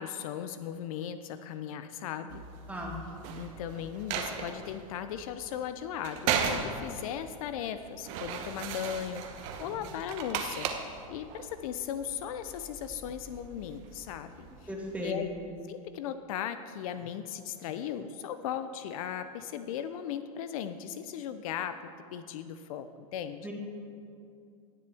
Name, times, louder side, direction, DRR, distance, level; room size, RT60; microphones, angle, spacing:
voice 1, 0.0-2.4 3.3-14.5 15.0-15.3 15.7-23.5, left 9 dB, 70° left, 10 dB, 0.5 m, -37 dB
sound 1, 2.3-15.1, right 6 dB, 60° right, 1.1 m, -38 dB
voice 2, 2.7-3.0 14.7-15.2 23.4-23.5, equal, 10° right, -2 dB, 2.2 m, -36 dB
17.5 x 6.8 x 3.4 m, 2.5 s
hypercardioid pair, 105°, 19 cm